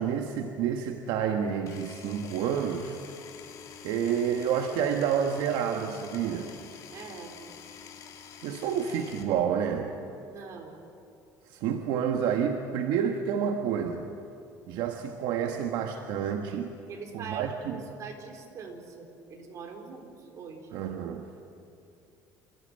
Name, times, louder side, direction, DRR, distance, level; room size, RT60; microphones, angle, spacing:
voice 1, 0.0-3.0 3.8-6.5 8.4-10.0 11.5-14.1 14.7-16.7 17.1-17.8 20.7-21.3, right 8 dB, 75° right, 4 dB, 1.3 m, -29 dB
Power tool, 1.6-9.2, left 8 dB, 50° left, 2.7 m, -47 dB
voice 2, 6.9-7.4 10.3-10.8 16.9-20.7, right 5 dB, 45° right, 2 dB, 4.1 m, -43 dB
27.5 x 15.0 x 9.0 m, 2.6 s
cardioid pair, 135°, 8 cm